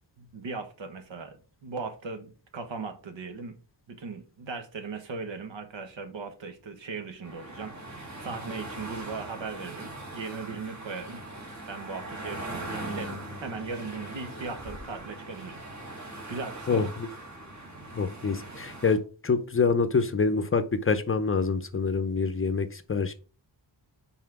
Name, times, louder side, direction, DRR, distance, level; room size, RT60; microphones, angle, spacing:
voice 1, 0.2-3.6 3.9-11.2 11.7-15.6 16.3-16.9, right 4 dB, 80° right, 1.3 m, -38 dB
sound 1, 7.2-19.0, right 1 dB, 40° right, 2.0 m, -40 dB
voice 2, 17.9-19.0 19.2-23.1, left 4 dB, 30° left, 0.6 m, -26 dB
5.8 x 4.2 x 4.7 m
wide cardioid pair, 150°, 44 cm